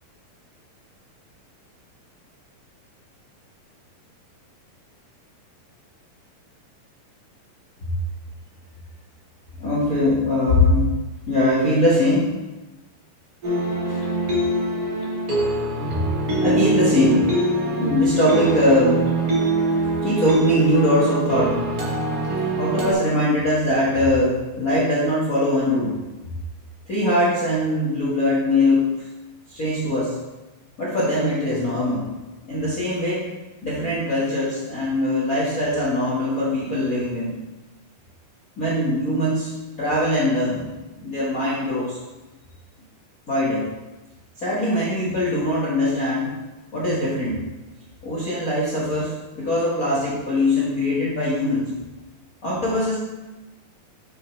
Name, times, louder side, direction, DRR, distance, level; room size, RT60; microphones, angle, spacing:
voice 1, 9.6-10.9 11.3-12.3 13.9-14.0 16.4-17.3 17.7-19.0 20.0-21.6 22.6-26.0 26.9-29.1 29.5-30.2 30.8-32.1 32.5-33.3 33.6-37.4 38.6-39.5 39.8-40.7 41.0-42.0 43.3-43.7 44.4-46.3 46.7-47.4 48.0-51.7 52.4-53.0, left 1 dB, 85° left, -7 dB, 0.7 m, -21 dB
sound 1, 13.4-22.9, right 2 dB, 40° right, 1.5 m, -23 dB
9.7 x 5.6 x 3.2 m, 1.1 s
omnidirectional pair, 4.0 m